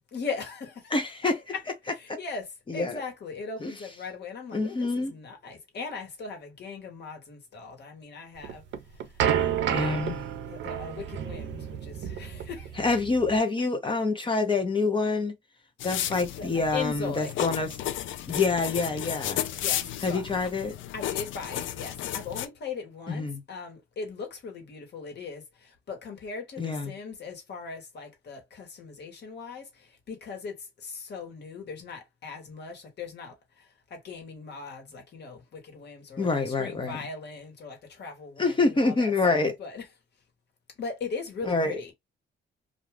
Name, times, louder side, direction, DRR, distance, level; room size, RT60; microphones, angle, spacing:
voice 1, 0.1-0.9 1.2-8.6 8.9-9.3 10.5-12.8 16.4-17.4 19.6-20.2 20.9-39.9 40.8-41.9, left 5 dB, 60° left, 1.3 m, -39 dB
voice 2, 0.9-1.4 2.1-2.2 2.7-3.0 3.6-3.7 4.5-5.1 9.3-10.2 12.8-15.3 15.8-17.7 18.3-19.4 20.0-20.8 23.1-23.4 26.6-26.9 36.2-37.0 38.4-39.5 41.4-41.8, left 3 dB, 25° left, 0.7 m, -26 dB
sound 1, 8.4-13.4, right 9 dB, 70° right, 0.6 m, -30 dB
sound 2, 15.8-22.5, left 12 dB, 75° left, 0.4 m, -33 dB
2.5 x 2.3 x 3.3 m
cardioid pair, 90°, 20 cm